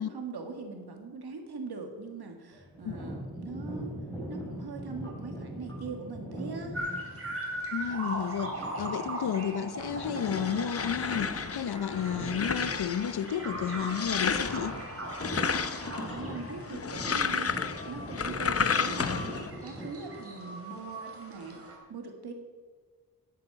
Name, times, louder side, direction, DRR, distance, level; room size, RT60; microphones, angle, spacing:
voice 1, 0.0-4.0 4.3-6.8 16.0-19.2 19.6-21.6 21.9-22.3, right 4 dB, 90° right, 1.9 m, -41 dB
sound 1, 2.5-20.2, equal, 10° left, 3.9 m, -42 dB
sound 2, 6.7-21.8, right 1 dB, 40° right, 2.7 m, -40 dB
voice 2, 7.7-8.5 8.8-14.8, left 8 dB, 90° left, 0.7 m, -32 dB
sound 3, 9.8-19.5, left 6 dB, 40° left, 0.6 m, -33 dB
11.5 x 8.5 x 6.8 m
wide cardioid pair, 140°, 37 cm